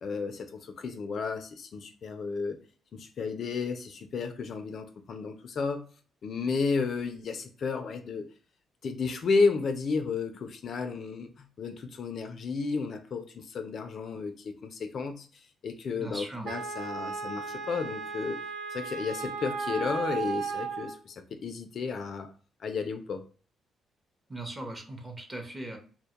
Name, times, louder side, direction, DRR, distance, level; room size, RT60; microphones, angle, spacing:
voice 1, 0.0-2.6 2.9-5.8 6.2-8.2 8.8-15.3 15.6-18.4 18.7-22.3 22.6-23.2, left 4 dB, 55° left, 7 dB, 0.3 m, -32 dB
voice 2, 16.0-16.5 24.3-25.8, right 2 dB, 20° right, 4 dB, 0.6 m, -39 dB
Wind instrument woodwind instrument, 16.4-21.0, right 5 dB, 75° right, 0.5 m, -35 dB
2.1 x 2.0 x 2.9 m, 0.40 s
cardioid pair, 90°, 0 cm